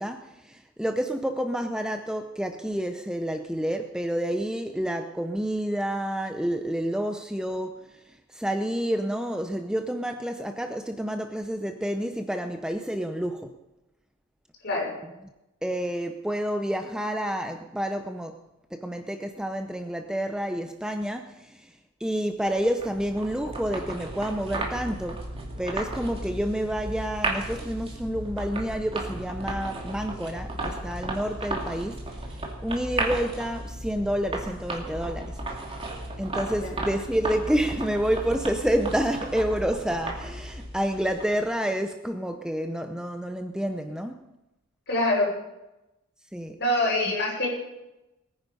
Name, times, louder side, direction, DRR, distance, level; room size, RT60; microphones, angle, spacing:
voice 1, 0.0-8.0 8.3-13.5 15.6-18.4 18.7-21.8 22.0-25.2 25.6-35.4 36.2-44.2 46.3-46.6, equal, 5° right, 6 dB, 0.6 m, -29 dB
sound 1, 22.5-41.5, right 2 dB, 25° right, 2.6 m, -34 dB
voice 2, 44.9-45.3 46.6-47.5, left 1 dB, 50° left, -3 dB, 5.9 m, -25 dB
20.5 x 9.9 x 5.4 m, 0.97 s
head